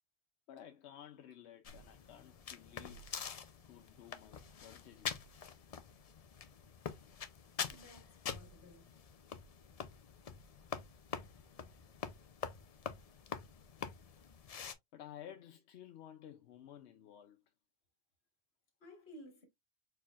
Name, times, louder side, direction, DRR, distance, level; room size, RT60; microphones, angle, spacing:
voice 1, 0.5-3.0 3.7-5.2 14.0-14.2 14.9-17.4, left 10 dB, 85° left, 0.9 m, -54 dB
sound 1, 1.6-14.7, left 6 dB, 45° left, 0.5 m, -46 dB
voice 2, 7.7-8.9 18.8-19.4, left 1 dB, 70° left, 1.8 m, -56 dB
4.5 x 4.3 x 2.3 m
omnidirectional pair, 1.1 m